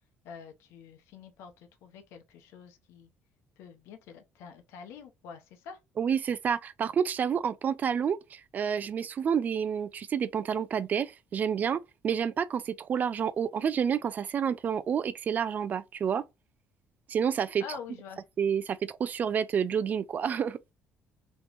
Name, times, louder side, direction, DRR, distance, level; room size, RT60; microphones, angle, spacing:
voice 1, 0.2-3.1 3.6-5.8 17.6-18.2, left 7 dB, 85° left, 0.8 m, -46 dB
voice 2, 6.0-16.2 17.1-17.6 18.4-20.6, right 7 dB, 40° right, 0.3 m, -29 dB
3.4 x 3.0 x 2.5 m
cardioid pair, 120°, 4 cm